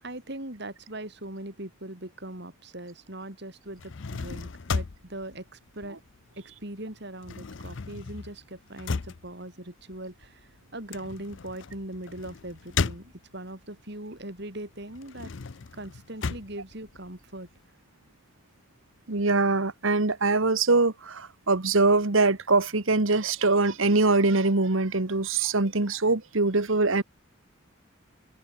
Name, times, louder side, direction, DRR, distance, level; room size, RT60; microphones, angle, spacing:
voice 1, 0.0-6.0 6.4-15.3 15.7-17.5, right 1 dB, 50° right, 3.7 m, -40 dB
sound 1, 3.7-6.5 6.8-13.6 14.1-17.6, left 4 dB, 60° left, 0.6 m, -35 dB
voice 2, 19.1-27.0, right 3 dB, 70° right, 1.5 m, -23 dB
head